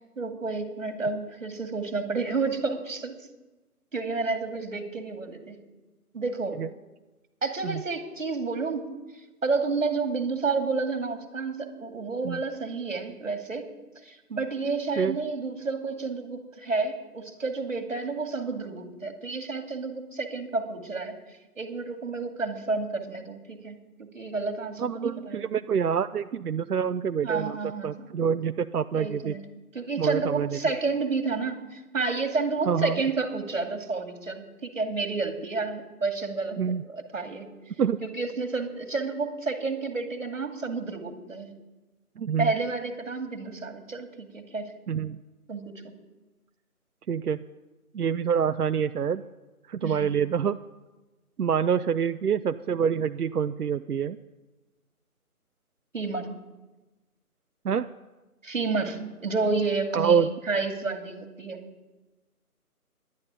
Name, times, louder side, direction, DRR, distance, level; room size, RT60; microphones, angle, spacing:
voice 1, 0.2-3.2 3.9-5.6 6.1-6.6 7.4-8.9 9.4-13.7 14.0-21.2 21.6-25.6 27.2-28.1 28.9-29.4 29.7-36.6 36.9-37.5 38.0-41.5 42.4-44.6 45.5-45.8 49.8-50.1 55.9-56.3 58.4-61.6, right 4 dB, 55° right, 6 dB, 2.5 m, -30 dB
voice 2, 24.8-27.6 27.8-29.3 30.0-30.6 32.7-33.0 36.6-36.8 37.8-38.0 42.2-42.5 44.9-45.2 47.1-47.4 47.9-49.2 49.7-50.6 51.4-54.2 57.6-57.9 59.9-60.3, right 7 dB, 80° right, 10 dB, 0.7 m, -26 dB
11.0 x 11.0 x 9.5 m, 1.1 s
figure-of-eight pair, 175°, 45 cm